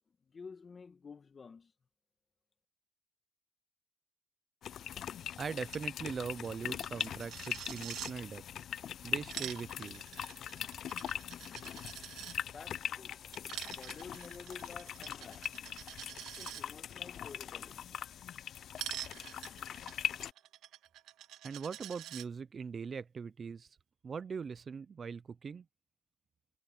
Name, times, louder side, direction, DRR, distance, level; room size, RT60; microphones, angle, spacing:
voice 1, 0.2-1.7 11.9-12.1 12.4-13.2 13.7-15.5 16.4-17.9, left 5 dB, 35° left, 2.0 m, -51 dB
sound 1, 4.6-20.3, left 9 dB, 60° left, 0.3 m, -41 dB
voice 2, 5.4-8.4 9.0-10.0 21.4-23.7 24.0-25.7, right 6 dB, 40° right, 0.7 m, -41 dB
Coin (dropping), 5.7-5.8 6.1-6.2 6.4-8.1 9.1-12.4 13.3-16.6 18.8-22.3, right 12 dB, 80° right, 1.9 m, -46 dB
cardioid pair, 90°, 0 cm